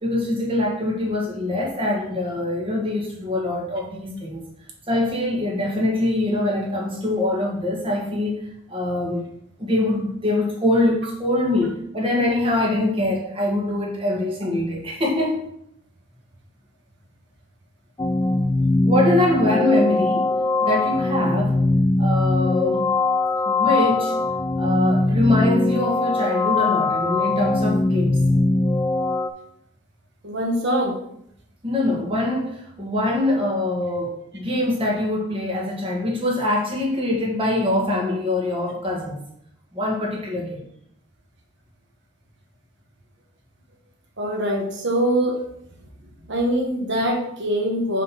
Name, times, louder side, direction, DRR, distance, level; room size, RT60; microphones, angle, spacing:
voice 1, 0.0-4.4 4.9-9.3 9.6-15.4 18.8-20.3 20.6-21.6 22.0-23.0 23.4-24.2 24.6-28.2 31.6-39.2 39.7-40.7, left 1 dB, 25° right, -2 dB, 1.6 m, -23 dB
sound 1, 18.0-29.3, left 2 dB, 15° left, 0.3 m, -21 dB
voice 2, 30.2-30.9 44.2-45.4 46.2-48.0, equal, 55° right, 1 dB, 1.4 m, -23 dB
5.0 x 4.3 x 5.7 m, 0.74 s
head